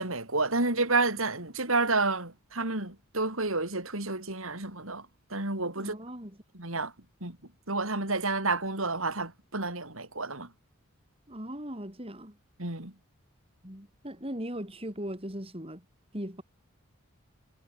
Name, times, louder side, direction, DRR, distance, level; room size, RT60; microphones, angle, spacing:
voice 1, 0.0-5.0 5.3-5.9 6.6-6.9 7.2-7.4 7.7-10.5 12.6-12.9, right 3 dB, 75° right, 6.5 m, -30 dB
voice 2, 5.8-6.4 11.3-12.4 13.6-15.8 16.1-16.4, equal, 25° right, 6.3 m, -38 dB
head